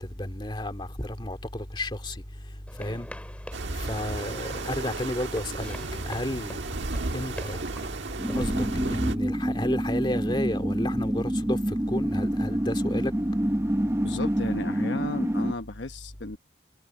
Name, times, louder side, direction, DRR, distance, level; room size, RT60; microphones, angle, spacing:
voice 1, 0.2-2.1 2.8-3.1 3.9-5.8 6.1-6.6 7.1-7.6 8.3-11.6 11.9-13.1, left 1 dB, 25° left, 2.3 m, -31 dB
sound 1, 2.7-8.6, left 1 dB, 5° left, 2.9 m, -45 dB
sound 2, 3.5-9.2, right 2 dB, 85° right, 1.5 m, -33 dB
sound 3, 8.2-15.5, right 1 dB, 15° right, 0.7 m, -27 dB
voice 2, 14.0-16.4, left 2 dB, 80° left, 1.1 m, -33 dB
head